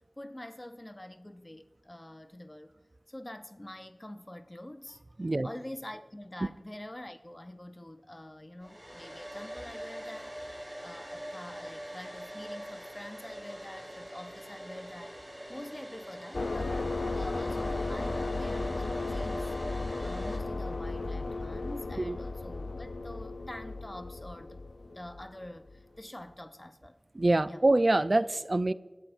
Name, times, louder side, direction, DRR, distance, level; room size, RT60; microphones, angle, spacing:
voice 1, 0.2-2.7 3.1-5.0 5.4-15.2 15.5-24.6 24.9-27.0 27.5-27.6, left 1 dB, 25° left, 0.6 m, -46 dB
Domestic sounds home sounds, 8.6-20.4, equal, ahead, 5.4 m, -43 dB
sound 1, 13.4-18.4, right 1 dB, 30° right, 2.5 m, -58 dB
sound 2, 16.3-25.8, left 3 dB, 75° left, 0.5 m, -35 dB
voice 2, 27.2-28.7, right 2 dB, 50° right, 0.4 m, -25 dB
24.5 x 14.0 x 2.5 m
wide cardioid pair, 50°, 0 cm